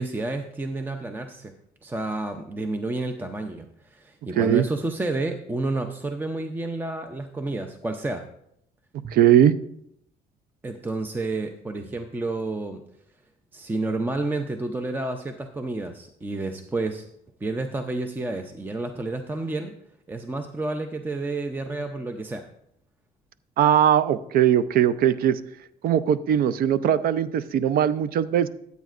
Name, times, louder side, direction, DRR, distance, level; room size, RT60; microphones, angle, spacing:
voice 1, 0.0-1.5 1.8-8.2 9.0-9.1 10.6-12.8 13.5-17.1 17.4-19.7 20.1-22.4, right 2 dB, 10° right, 7 dB, 0.5 m, -30 dB
voice 2, 4.4-4.7 9.1-9.5 23.6-25.4 25.8-28.5, right 10 dB, 60° right, 14 dB, 0.5 m, -20 dB
13.5 x 8.2 x 2.5 m, 0.75 s
cardioid pair, 110°, 17 cm